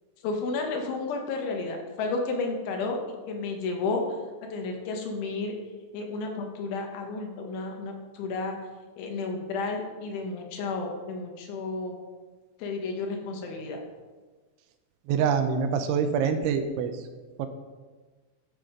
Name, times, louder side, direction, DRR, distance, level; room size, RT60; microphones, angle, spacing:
voice 1, 0.2-3.0 3.3-4.2 4.5-5.6 5.9-8.6 9.0-12.0 12.6-13.8, left 3 dB, 75° left, 2 dB, 3.8 m, -32 dB
voice 2, 15.1-16.9 17.4-17.5, right 6 dB, 85° right, 8 dB, 3.0 m, -25 dB
14.0 x 7.5 x 5.2 m, 1.3 s
omnidirectional pair, 5.6 m